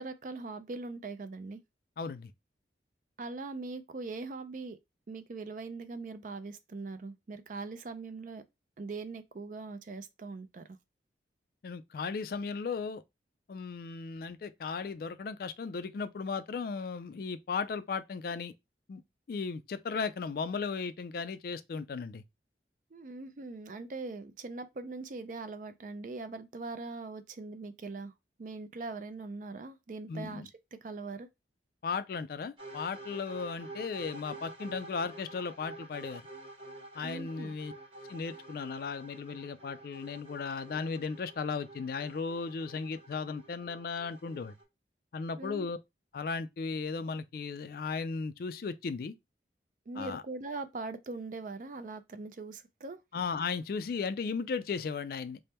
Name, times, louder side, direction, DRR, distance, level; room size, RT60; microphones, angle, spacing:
voice 1, 0.0-1.6 3.2-4.8 5.1-8.4 8.8-10.7 22.9-28.1 28.4-30.4 30.7-31.3 37.0-37.5 45.4-45.7 49.9-53.0, right 3 dB, 45° right, 0.4 m, -41 dB
voice 2, 2.0-2.3 11.6-13.0 13.5-18.5 18.9-19.0 19.3-22.2 30.1-30.5 31.8-36.3 37.0-37.7 38.1-44.5 45.1-45.8 46.1-49.1 49.9-50.2 53.1-55.4, left 5 dB, 55° left, 0.3 m, -36 dB
sound 1, 32.6-44.6, right 1 dB, 30° right, 1.0 m, -49 dB
3.4 x 2.1 x 4.2 m
head